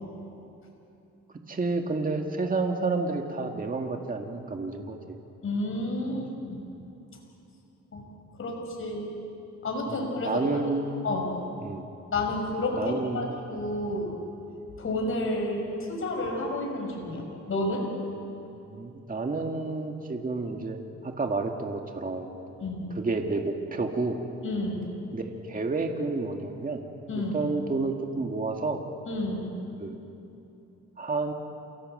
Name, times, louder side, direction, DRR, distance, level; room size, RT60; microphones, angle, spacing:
voice 1, 1.5-5.0 6.1-6.2 9.9-10.9 11.6-11.8 12.8-13.3 18.7-20.8 21.0-22.3 23.0-24.2 25.1-26.8 27.1-28.8 29.8-30.0 31.0-31.3, right 3 dB, 25° right, 3 dB, 2.1 m, -30 dB
voice 2, 5.4-6.7 7.9-8.0 8.4-9.1 9.6-10.4 11.0-11.3 12.1-14.1 14.8-17.9 22.6-22.9 24.4-24.9 27.1-27.4 29.1-29.5, left 2 dB, 45° left, 1 dB, 5.8 m, -30 dB
28.5 x 17.0 x 7.9 m, 2.9 s
cardioid pair, 90°, 30 cm